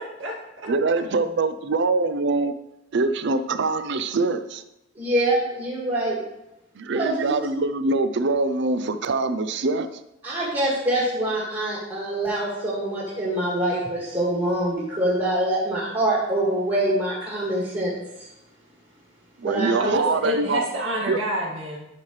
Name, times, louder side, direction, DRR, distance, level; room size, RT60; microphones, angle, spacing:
voice 1, 0.0-0.7 19.8-21.9, equal, 80° right, -2 dB, 2.0 m, -28 dB
voice 2, 0.7-2.5 2.9-4.6 6.8-9.9 19.4-20.7 21.1-21.2, right 3 dB, 65° right, 11 dB, 0.5 m, -24 dB
voice 3, 5.0-6.2 6.9-7.3 10.2-17.9 18.2-18.3 19.4-19.7, right 1 dB, 30° right, -7 dB, 2.1 m, -25 dB
11.0 x 5.6 x 3.2 m, 0.89 s
head